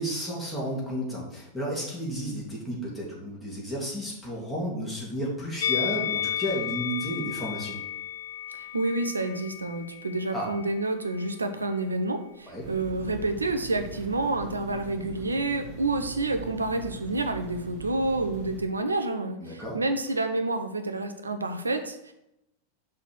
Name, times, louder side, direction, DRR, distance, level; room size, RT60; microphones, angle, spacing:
voice 1, 0.0-7.8 10.3-10.5 12.5-12.6 19.4-19.8, equal, 5° left, -6 dB, 2.5 m, -32 dB
Musical instrument, 5.6-10.8 11.1-11.3, left 10 dB, 60° left, 0.3 m, -33 dB
voice 2, 8.5-22.1, right 2 dB, 80° right, 7 dB, 0.7 m, -29 dB
sound 1, 12.6-18.6, right 5 dB, 40° right, 1.1 m, -41 dB
5.9 x 4.3 x 6.2 m, 0.86 s
figure-of-eight pair, 90°, 0 cm